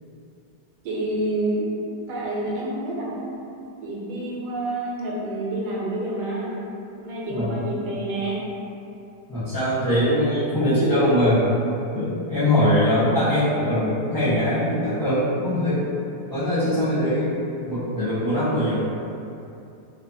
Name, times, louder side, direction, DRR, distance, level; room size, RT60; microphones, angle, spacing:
voice 1, 0.8-1.7 2.1-3.3 3.8-6.6 7.0-8.4, right 1 dB, 80° right, -4 dB, 1.1 m, -28 dB
voice 2, 7.3-7.7 9.3-11.4 11.9-15.8 16.3-17.3 17.6-18.8, left 1 dB, 30° left, -15 dB, 0.3 m, -22 dB
2.7 x 2.3 x 2.5 m, 2.7 s
omnidirectional pair, 1.8 m